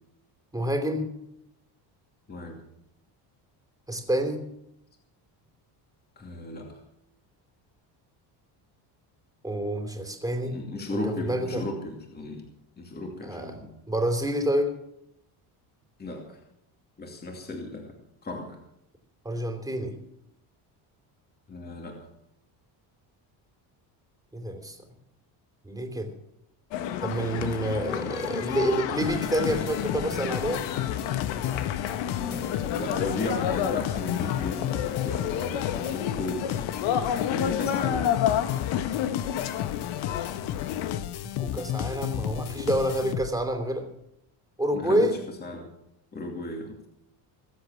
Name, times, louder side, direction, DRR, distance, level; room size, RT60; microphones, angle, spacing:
voice 1, 0.5-1.1 3.9-4.4 9.4-10.6 10.9-11.6 13.2-13.6 13.9-14.7 19.2-19.9 24.3-24.8 25.6-26.1 27.0-30.6 41.4-43.8 44.6-45.2, right 1 dB, 10° right, 5 dB, 3.1 m, -28 dB
voice 2, 2.3-2.6 6.2-6.8 10.4-12.5 12.8-13.7 16.0-16.4 17.0-17.9 18.2-18.6 21.5-22.1 27.8-28.2 32.1-36.6 37.3-38.1 44.7-45.7 46.1-46.8, left 2 dB, 20° left, 2 dB, 2.6 m, -35 dB
sound 1, 26.7-41.0, left 9 dB, 75° left, 1.6 m, -30 dB
sound 2, 29.0-43.6, left 12 dB, 60° left, 0.9 m, -33 dB
21.5 x 8.0 x 7.3 m, 0.80 s
cardioid pair, 125°, 44 cm